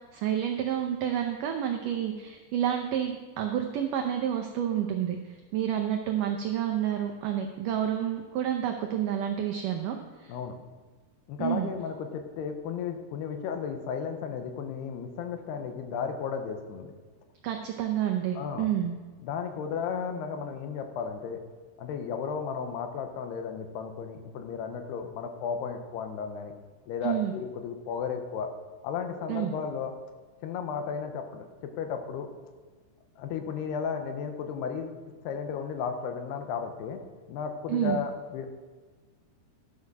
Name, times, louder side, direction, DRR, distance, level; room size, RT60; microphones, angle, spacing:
voice 1, 0.1-10.4 11.4-11.7 17.4-18.9 27.0-27.3 29.3-29.5 37.7-38.0, right 10 dB, 85° right, 4 dB, 1.8 m, -29 dB
voice 2, 11.3-16.9 18.4-18.7 19.2-21.4 21.8-26.5 26.9-28.5 28.8-29.9 30.4-32.3 33.2-35.0 35.2-37.0 37.3-38.5, left 6 dB, 85° left, 6 dB, 2.9 m, -34 dB
12.5 x 6.6 x 6.0 m, 1.4 s
omnidirectional pair, 4.7 m